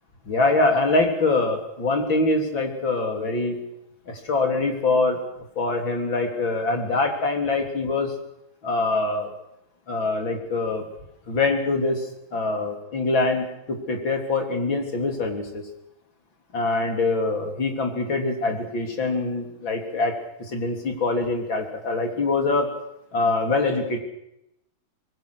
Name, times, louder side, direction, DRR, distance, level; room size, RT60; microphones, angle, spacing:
voice 1, 0.2-3.6 4.1-5.2 5.6-8.1 8.6-9.3 9.9-10.8 11.3-15.6 16.5-22.7 23.1-24.0, left 3 dB, 70° left, 4 dB, 4.2 m, -24 dB
25.5 x 20.5 x 6.4 m, 0.83 s
omnidirectional pair, 2.2 m